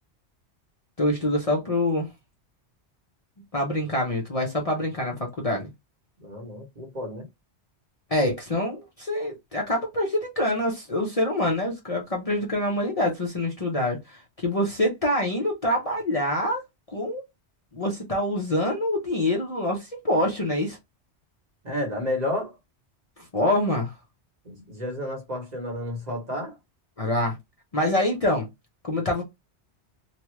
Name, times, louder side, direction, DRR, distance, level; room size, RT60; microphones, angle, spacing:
voice 1, 1.0-2.1 3.5-5.7 8.1-16.6 16.9-17.2 17.7-20.8 23.3-23.9 27.0-27.4 27.7-28.5 28.8-29.2, left 1 dB, 35° left, 0.7 m, -25 dB
voice 2, 6.2-7.3 21.6-22.5 24.4-26.6, left 1 dB, 40° right, 1.0 m, -31 dB
2.9 x 2.3 x 3.0 m
omnidirectional pair, 1.2 m